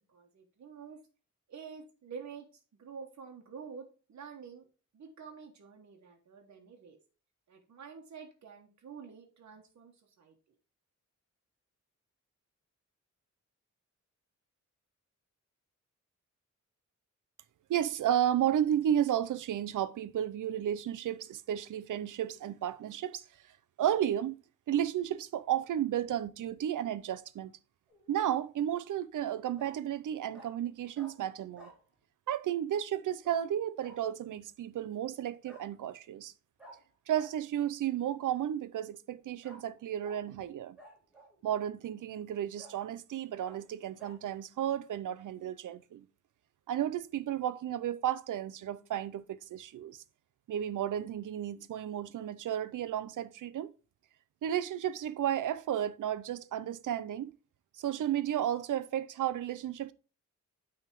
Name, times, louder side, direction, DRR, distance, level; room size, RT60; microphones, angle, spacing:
voice 1, 0.1-1.0 1.5-2.5 2.8-4.7 4.9-7.0 7.5-10.5, right 6 dB, 65° right, 1.2 m, -48 dB
voice 2, 17.7-23.2 23.8-24.4 24.7-27.5 28.1-31.7 32.3-36.3 37.1-40.8 41.4-46.1 46.7-50.0 50.5-53.7 54.4-57.3 57.8-59.9, right 10 dB, 85° right, 0.6 m, -33 dB
Bark, 27.9-28.3 29.6-29.8 30.3-30.5 30.9-31.1 31.6-31.8 33.2-33.4 33.8-34.0 35.4-35.7 36.6-36.8 37.1-37.3 39.4-39.6 40.0-40.2 40.8-41.4 41.9-42.0 42.6-42.8 43.4-43.6 44.0-44.2, equal, 5° right, 2.5 m, -53 dB
9.0 x 3.6 x 4.5 m
wide cardioid pair, 155°, 30 cm